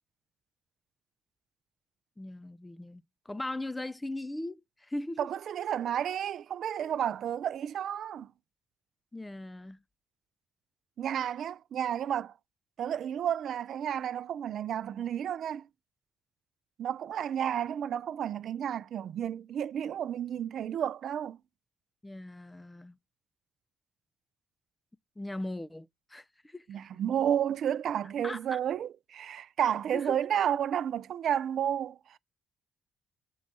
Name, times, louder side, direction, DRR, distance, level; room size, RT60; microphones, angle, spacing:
voice 1, 2.2-5.3 9.1-9.8 22.0-23.0 25.2-26.8 28.2-28.6 29.9-30.2, left 1 dB, 15° left, 0.4 m, -39 dB
voice 2, 5.2-8.3 11.0-12.3 12.8-15.7 16.8-21.4 26.7-32.2, right 9 dB, 65° right, 0.3 m, -31 dB
7.2 x 4.5 x 4.1 m
supercardioid pair, 65°, 0 cm